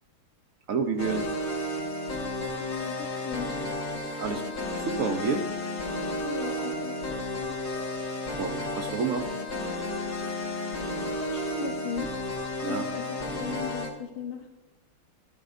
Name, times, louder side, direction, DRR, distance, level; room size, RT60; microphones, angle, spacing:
voice 1, 0.7-1.2 4.2-4.4 4.7-5.4 8.4-9.3 12.6-12.8, right 5 dB, 65° right, 4 dB, 0.8 m, -29 dB
sound 1, 1.0-13.9, left 1 dB, 40° left, 2.4 m, -32 dB
voice 2, 2.2-3.5 6.2-7.7 10.8-12.1 12.5-14.5, left 7 dB, 75° left, 2 dB, 1.7 m, -38 dB
14.0 x 13.0 x 2.6 m, 1.1 s
omnidirectional pair, 2.4 m